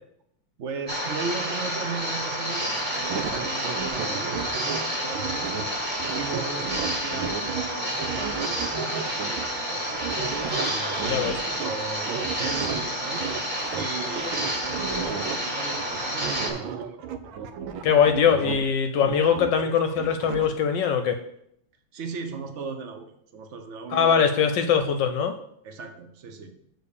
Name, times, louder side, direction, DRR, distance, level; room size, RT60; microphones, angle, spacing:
voice 1, 0.6-5.7 6.1-10.2 10.6-13.3 13.8-17.1 21.9-24.5 25.6-26.5, right 4 dB, 65° right, 7 dB, 0.7 m, -37 dB
sound 1, 0.9-16.5, equal, 25° right, 1.5 m, -30 dB
sound 2, 2.8-7.6 7.9-12.8 13.1-15.4 15.7-18.7 19.0-20.5, right 7 dB, 80° right, 1.4 m, -34 dB
voice 2, 17.8-21.2 23.9-25.4, left 7 dB, 75° left, 7 dB, 1.2 m, -22 dB
6.9 x 4.2 x 6.6 m, 0.73 s
omnidirectional pair, 2.1 m